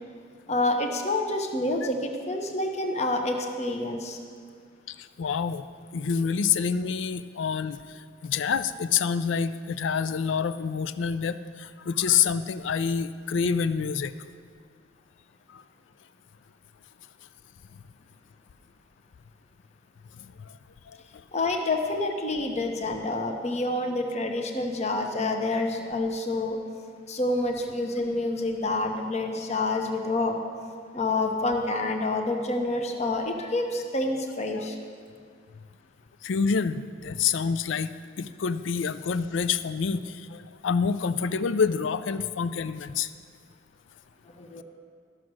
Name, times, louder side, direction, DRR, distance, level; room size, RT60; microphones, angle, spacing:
voice 1, 0.5-4.2 21.3-26.6 27.1-30.4 30.9-34.7 44.4-44.6, left 2 dB, 35° left, 4 dB, 0.9 m, -28 dB
voice 2, 4.9-5.6 5.9-14.1 15.5-15.6 17.7-17.8 20.1-20.6 20.9-21.2 31.8-31.9 34.5-34.7 36.2-43.1, left 6 dB, 65° left, 13 dB, 0.4 m, -27 dB
13.0 x 6.3 x 6.1 m, 2.1 s
head